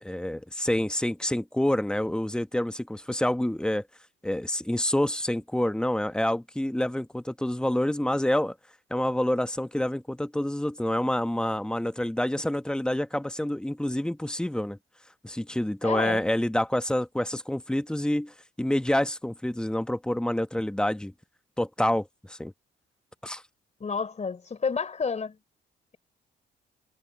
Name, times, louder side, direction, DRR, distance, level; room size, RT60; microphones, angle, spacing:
voice 1, 0.0-3.8 4.2-8.5 8.9-14.8 15.2-21.1 21.6-22.5 23.2-23.4, left 1 dB, 5° left, 1.1 m, -27 dB
voice 2, 15.8-16.2 23.8-25.4, left 5 dB, 35° left, 4.0 m, -30 dB
cardioid pair, 90°, 20 cm